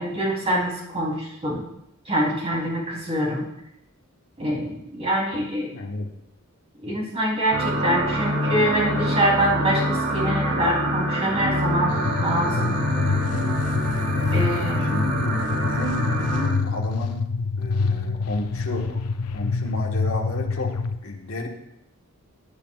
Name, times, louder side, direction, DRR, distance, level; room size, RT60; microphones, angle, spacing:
voice 1, 0.0-1.6 2.1-3.4 4.4-5.7 6.8-12.7 14.3-14.9, right 1 dB, 30° right, -4 dB, 3.2 m, -25 dB
voice 2, 5.7-6.1 7.7-7.9 12.9-13.6 14.8-17.2 17.6-19.0 19.3-21.5, left 1 dB, 65° left, 0 dB, 1.4 m, -32 dB
sound 1, 7.5-16.5, equal, 80° right, 3.1 m, -25 dB
sound 2, 11.9-21.0, left 4 dB, 85° left, 0.6 m, -26 dB
15.5 x 8.9 x 2.4 m, 0.80 s
head